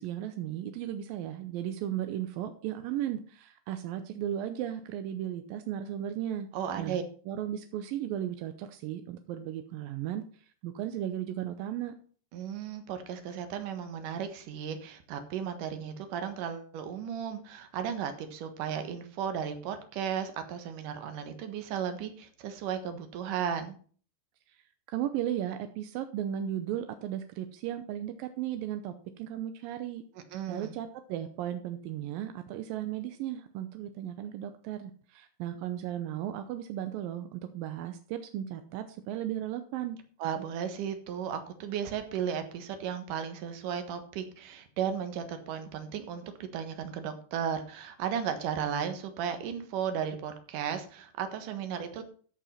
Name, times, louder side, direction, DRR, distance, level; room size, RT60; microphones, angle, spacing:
voice 1, 0.0-6.5 6.8-7.0 7.3-10.2 10.6-11.9 24.5-24.6 24.9-30.0 30.5-40.0, right 11 dB, 80° right, 9 dB, 2.1 m, -35 dB
voice 2, 6.5-7.0 12.3-23.8 30.3-30.8 40.2-52.0, right 8 dB, 65° right, 8 dB, 2.5 m, -35 dB
14.0 x 5.6 x 5.6 m, 0.44 s
omnidirectional pair, 4.9 m